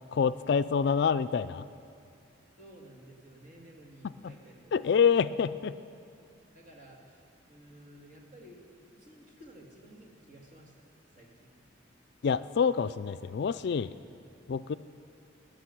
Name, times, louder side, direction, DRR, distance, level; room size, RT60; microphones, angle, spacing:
voice 1, 0.1-1.7 4.2-4.3 4.7-5.8 12.2-13.9 14.5-14.7, left 6 dB, 60° left, 14 dB, 0.3 m, -27 dB
voice 2, 2.6-5.3 6.5-10.7 11.1-11.6 14.1-14.5, right 1 dB, 45° right, -1 dB, 2.5 m, -54 dB
17.5 x 6.6 x 10.0 m, 2.5 s
head